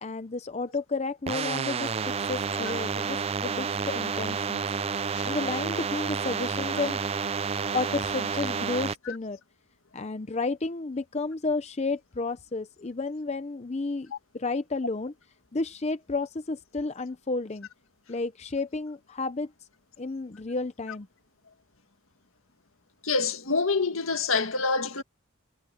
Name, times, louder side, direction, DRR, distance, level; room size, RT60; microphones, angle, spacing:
voice 1, 0.0-4.7 5.2-7.0 7.7-9.4 9.9-15.1 15.5-17.7 18.1-19.5 20.0-21.1, left 3 dB, 30° left, 0.6 m, -32 dB
sound 1, 1.3-8.9, right 6 dB, 30° right, 0.4 m, -30 dB
voice 2, 23.0-25.0, left 4 dB, 75° left, 1.9 m, -26 dB
head